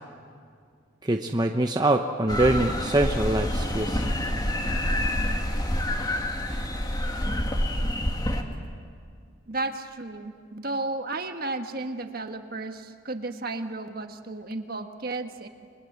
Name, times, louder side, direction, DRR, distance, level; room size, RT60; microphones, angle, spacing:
voice 1, 1.0-4.1, right 1 dB, 20° right, 4 dB, 0.8 m, -24 dB
sound 1, 2.3-8.4, left 1 dB, 20° left, 1.8 m, -27 dB
voice 2, 9.5-15.5, right 2 dB, 45° right, 6 dB, 1.5 m, -33 dB
29.5 x 22.5 x 8.1 m, 2.2 s
head